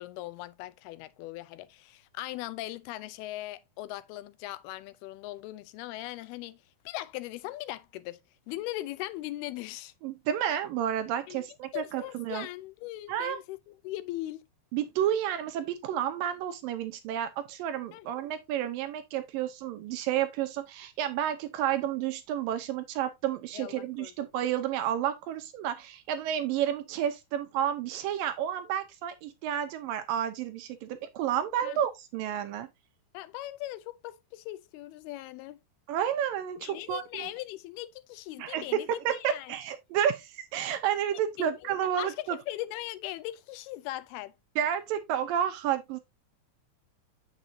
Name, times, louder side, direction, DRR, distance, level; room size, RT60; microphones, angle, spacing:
voice 1, 0.0-6.6 6.9-8.2 8.5-9.9 11.3-11.5 11.7-14.4 17.9-18.1 23.5-24.1 31.6-31.8 33.1-35.6 36.6-39.5 41.4-44.3, left 16 dB, 90° left, 2.6 m, -39 dB
voice 2, 10.0-12.5 13.1-13.4 14.7-32.7 35.9-37.3 38.4-42.4 44.6-46.0, right 10 dB, 75° right, 2.3 m, -31 dB
8.1 x 7.1 x 2.7 m
omnidirectional pair, 4.4 m